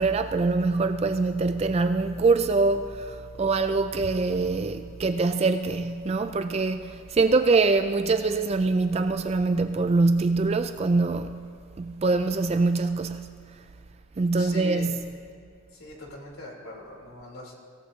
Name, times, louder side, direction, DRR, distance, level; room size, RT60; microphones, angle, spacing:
voice 1, 0.0-11.4 11.8-13.3 14.2-15.2, right 3 dB, 30° right, 0.3 m, -24 dB
voice 2, 14.4-15.0 15.7-17.5, left 2 dB, 85° left, 3.6 m, -41 dB
24.5 x 17.0 x 2.8 m
head